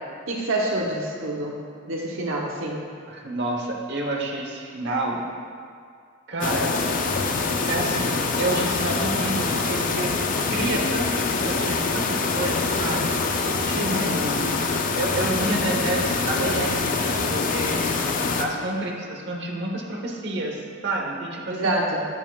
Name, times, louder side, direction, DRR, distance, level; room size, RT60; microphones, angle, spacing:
voice 1, 0.3-1.5 1.9-2.8 13.8-14.3 21.5-22.1, right 1 dB, 80° right, -2 dB, 1.0 m, -27 dB
voice 2, 3.1-5.2 6.3-6.8 7.7-10.1 10.5-13.2 13.6-14.4 15.0-21.7, right 2 dB, 55° right, 0 dB, 1.0 m, -29 dB
sound 1, 6.4-18.5, left 4 dB, 40° left, 0.5 m, -25 dB
10.5 x 7.0 x 2.4 m, 2.2 s
head